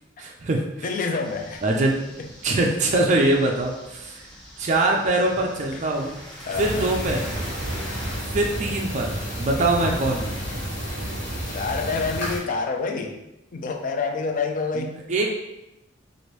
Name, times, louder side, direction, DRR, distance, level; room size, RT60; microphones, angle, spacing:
voice 1, 0.2-0.6 1.6-2.0 2.4-4.2 4.6-6.1 6.6-7.3 8.3-10.3 14.7-15.3, right 2 dB, 40° right, 0 dB, 0.4 m, -23 dB
voice 2, 0.8-1.6 2.2-2.3 5.7-5.8 6.5-6.7 11.5-13.2 13.5-15.0, left 4 dB, 45° left, 4 dB, 0.4 m, -27 dB
sound 1, 1.2-8.2, equal, 5° left, 0.8 m, -42 dB
sound 2, 6.5-12.4, equal, 60° left, 1.3 m, -30 dB
3.0 x 2.5 x 3.1 m, 0.91 s
head